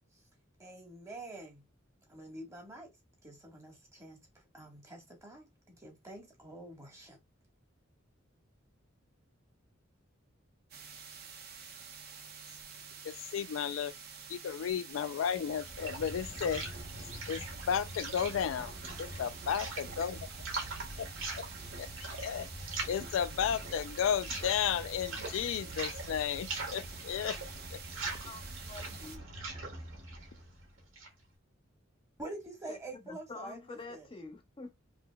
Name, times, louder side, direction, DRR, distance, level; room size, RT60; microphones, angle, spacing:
voice 1, 0.6-1.6 2.1-2.9 3.2-4.3 4.5-7.2 12.5-12.6 32.2-34.1, right 2 dB, 15° right, 1.4 m, -47 dB
sound 1, 10.7-29.2, right 6 dB, 55° right, 1.0 m, -49 dB
voice 2, 13.0-13.9 14.3-16.6 17.3-17.4 17.7-18.7 19.0-20.2 21.0-21.1 21.4-21.5 21.8-22.5 22.9-27.4 27.7-27.8, left 8 dB, 80° left, 0.3 m, -33 dB
sound 2, 15.2-31.2, right 2 dB, 80° right, 1.5 m, -42 dB
voice 3, 27.9-29.3 32.7-32.8 33.1-34.7, left 3 dB, 25° left, 0.6 m, -47 dB
5.0 x 2.7 x 2.2 m
head